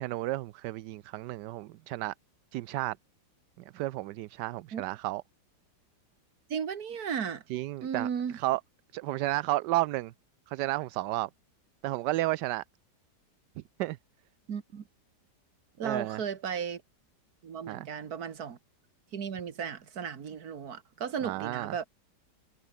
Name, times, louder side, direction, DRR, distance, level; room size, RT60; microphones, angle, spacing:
voice 1, 0.0-2.1 2.5-3.0 3.7-5.2 7.5-8.6 8.9-10.1 10.5-11.3 11.8-12.6 13.8-14.0 15.8-16.2 17.7-17.9 21.2-21.7, right 17 dB, 80° right, 1.2 m, -32 dB
voice 2, 6.5-7.4 7.8-8.4 14.5-14.8 15.8-16.8 17.4-18.6 19.1-21.9, right 7 dB, 60° right, 2.0 m, -35 dB
omnidirectional pair, 1.9 m